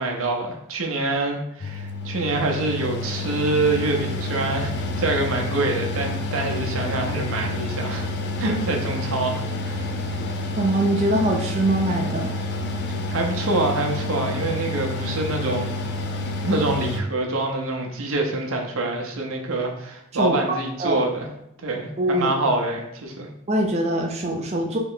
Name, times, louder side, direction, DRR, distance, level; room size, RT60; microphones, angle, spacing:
voice 1, 0.0-8.1 8.4-9.8 13.1-15.8 16.4-21.3 21.6-23.3, right 2 dB, 85° right, 2 dB, 0.7 m, -26 dB
Mechanical fan, 1.6-17.0, left 2 dB, 55° left, 0.4 m, -29 dB
voice 2, 10.6-12.4 20.1-20.4 20.8-21.0 22.0-22.3 23.5-24.8, right 1 dB, 30° right, 1 dB, 0.4 m, -22 dB
3.2 x 2.9 x 3.8 m, 0.81 s
head